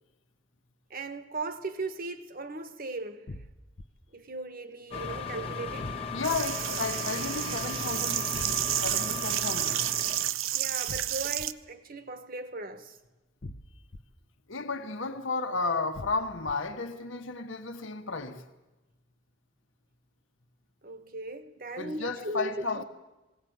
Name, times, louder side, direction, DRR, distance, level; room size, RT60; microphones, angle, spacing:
voice 1, 0.9-3.4 4.1-6.0 10.5-13.0 20.8-22.8, right 2 dB, 45° right, 1.3 m, -38 dB
sound 1, 3.3-3.8 5.8-6.4 8.3-8.9 10.9-11.5 13.4-14.0 15.9-16.5, left 1 dB, 55° left, 0.9 m, -42 dB
sound 2, 4.9-10.3, left 4 dB, 25° left, 1.4 m, -37 dB
voice 2, 6.1-9.9 14.5-18.4 21.8-22.8, left 3 dB, 70° left, 1.4 m, -33 dB
sound 3, 6.2-11.5, right 13 dB, 80° right, 0.6 m, -30 dB
20.0 x 17.5 x 9.3 m
head